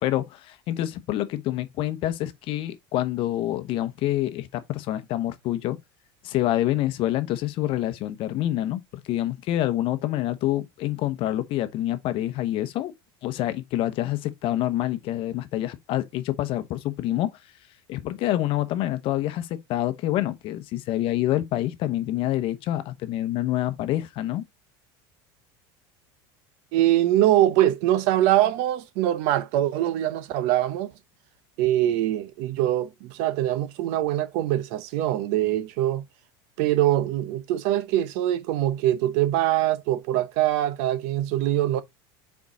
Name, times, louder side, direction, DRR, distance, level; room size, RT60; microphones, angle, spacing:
voice 1, 0.0-5.8 6.2-8.8 9.0-12.9 13.2-17.3 17.9-24.4, left 14 dB, 50° left, 0.9 m, -27 dB
voice 2, 26.7-30.9 31.6-36.0 36.6-41.8, right 13 dB, 65° right, 0.7 m, -23 dB
5.1 x 4.6 x 4.0 m
supercardioid pair, 135°, 12 cm